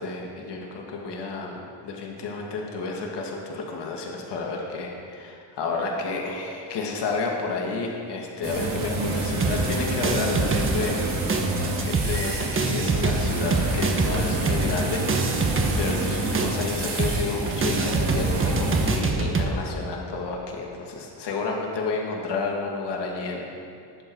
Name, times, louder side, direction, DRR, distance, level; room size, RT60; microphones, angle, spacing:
voice 1, 0.0-23.5, left 3 dB, 65° left, 0 dB, 2.0 m, -31 dB
sound 1, 8.4-18.9, right 2 dB, 50° right, 3.4 m, -28 dB
sound 2, 9.4-11.0 11.3-19.5, right 3 dB, 30° right, 1.2 m, -26 dB
19.5 x 7.7 x 4.7 m, 2.4 s
cardioid pair, 110°, 44 cm